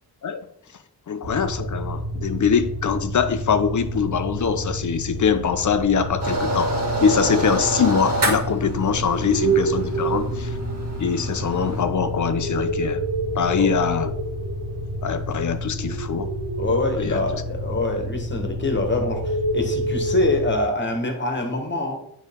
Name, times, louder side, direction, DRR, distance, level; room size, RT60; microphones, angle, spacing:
voice 1, 1.1-10.6 11.0-13.0 13.3-14.1 15.0-16.3 17.0-17.2, left 6 dB, 45° left, 10 dB, 0.6 m, -23 dB
sound 1, 1.2-20.5, right 1 dB, 65° right, 1.7 m, -28 dB
sound 2, 6.2-11.8, right 1 dB, 40° right, 2.1 m, -27 dB
voice 2, 16.6-22.0, left 2 dB, 25° left, 3 dB, 1.5 m, -25 dB
9.1 x 3.3 x 3.6 m, 0.75 s
wide cardioid pair, 90°, 41 cm